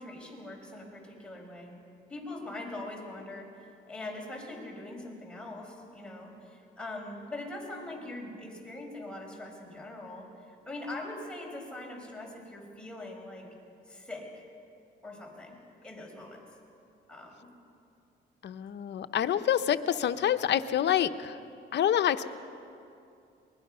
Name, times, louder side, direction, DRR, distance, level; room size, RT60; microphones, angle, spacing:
voice 1, 0.0-1.7 2.1-13.5 13.9-14.4 15.0-16.4 17.1-17.5, left 2 dB, 5° left, -1 dB, 5.3 m, -42 dB
voice 2, 18.4-21.3 21.7-22.3, left 10 dB, 60° left, 10 dB, 0.8 m, -27 dB
23.5 x 20.5 x 5.6 m, 2.6 s
cardioid pair, 90°, 20 cm